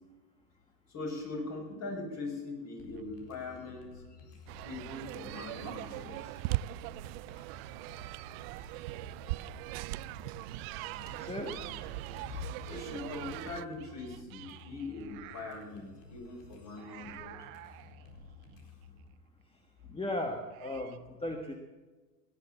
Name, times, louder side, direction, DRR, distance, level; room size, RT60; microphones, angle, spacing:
voice 1, 0.9-4.0 4.6-6.4 7.3-7.7 11.2-11.7 12.1-12.2 12.7-17.5, left 3 dB, 35° left, 2 dB, 6.4 m, -42 dB
sound 1, 2.8-19.1, left 4 dB, 75° left, 4.3 m, -54 dB
sound 2, 2.8-3.0 5.2-7.4 8.3-9.8 10.5-12.4 12.8-15.8 16.8-19.0 20.5-21.0, right 16 dB, 60° right, 1.4 m, -50 dB
sound 3, 4.5-13.6, right 19 dB, 45° right, 0.4 m, -40 dB
voice 2, 11.2-11.5 19.9-21.5, left 1 dB, 10° left, 4 dB, 1.5 m, -36 dB
17.5 x 11.0 x 7.2 m, 1.3 s
hypercardioid pair, 115°, 48 cm